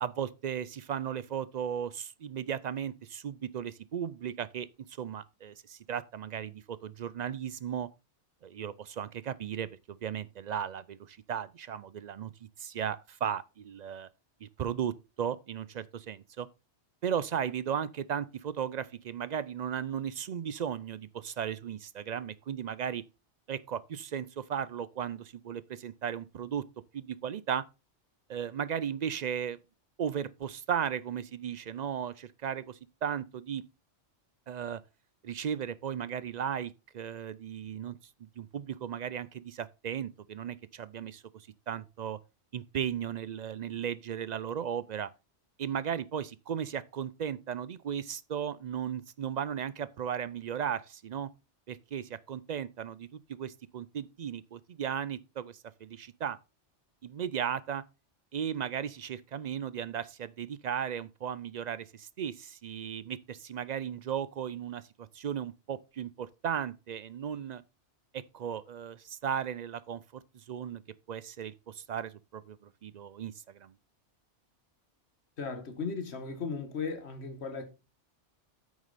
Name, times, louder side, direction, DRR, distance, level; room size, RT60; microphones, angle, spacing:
voice 1, 0.0-7.9 8.4-12.3 12.6-14.1 14.4-16.5 17.0-23.0 23.5-26.6 26.9-27.6 28.3-29.6 30.0-33.6 34.5-34.8 35.2-38.0 38.4-42.2 42.5-45.1 45.6-51.3 51.7-56.4 57.0-57.8 58.3-67.6 68.1-70.8 71.1-72.6 72.8-73.7, right 8 dB, 60° right, 0.4 m, -36 dB
voice 2, 75.4-77.7, left 5 dB, 65° left, 1.7 m, -36 dB
8.9 x 6.3 x 4.1 m
omnidirectional pair, 1.2 m